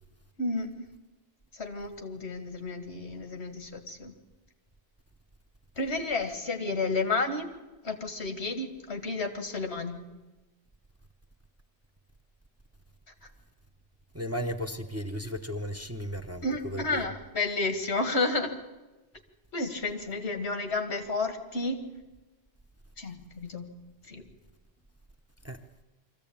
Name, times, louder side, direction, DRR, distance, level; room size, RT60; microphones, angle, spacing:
voice 1, 0.4-0.9 1.5-4.1 5.8-7.5 7.8-10.0 16.4-18.5 19.5-21.9 23.0-23.7 24.1-24.2, left 3 dB, 85° left, 2.2 m, -31 dB
voice 2, 14.1-17.1 25.4-25.6, equal, 15° right, 0.8 m, -35 dB
23.5 x 15.0 x 8.6 m
omnidirectional pair, 1.1 m